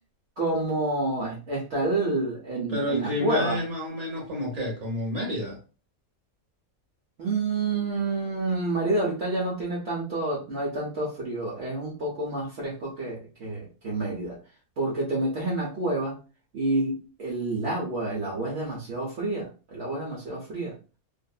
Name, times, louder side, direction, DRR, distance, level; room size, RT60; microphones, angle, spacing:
voice 1, 0.4-3.6 7.2-14.4 14.8-16.1 16.5-20.7, right 2 dB, 55° right, 1.0 m, -28 dB
voice 2, 2.7-5.6, left 1 dB, 30° right, 1.0 m, -30 dB
2.6 x 2.5 x 2.2 m
omnidirectional pair, 1.5 m